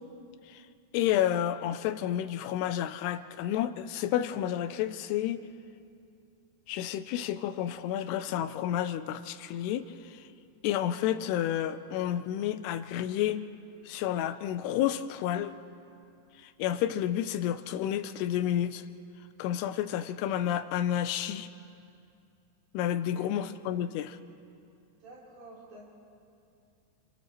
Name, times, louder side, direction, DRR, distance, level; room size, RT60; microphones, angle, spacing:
voice 1, 0.9-5.4 6.7-10.2 10.6-13.5 13.9-15.5 16.4-18.8 19.4-21.5 22.7-24.2, left 11 dB, 85° left, 11 dB, 2.7 m, -30 dB
voice 2, 23.1-23.4 25.0-25.9, right 2 dB, 80° right, -5 dB, 5.2 m, -50 dB
30.0 x 29.0 x 3.1 m, 2.5 s
omnidirectional pair, 4.7 m